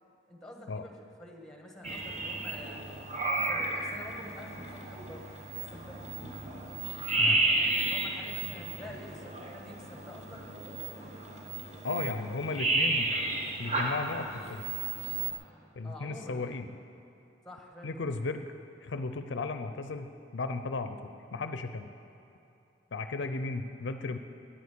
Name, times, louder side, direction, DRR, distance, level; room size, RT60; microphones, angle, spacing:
voice 1, 0.3-0.9 1.2-3.1 3.5-6.9 7.5-11.1 15.8-16.5 17.4-17.9, left 1 dB, 5° left, 1 dB, 1.6 m, -48 dB
sound 1, 1.8-15.3, right 2 dB, 35° right, 1.3 m, -33 dB
voice 2, 11.8-13.1 13.6-14.6 15.8-16.7 17.8-18.5 18.8-21.0 21.3-21.9 22.9-24.2, left 3 dB, 70° left, 9 dB, 0.5 m, -35 dB
10.0 x 9.4 x 8.5 m, 2.7 s
head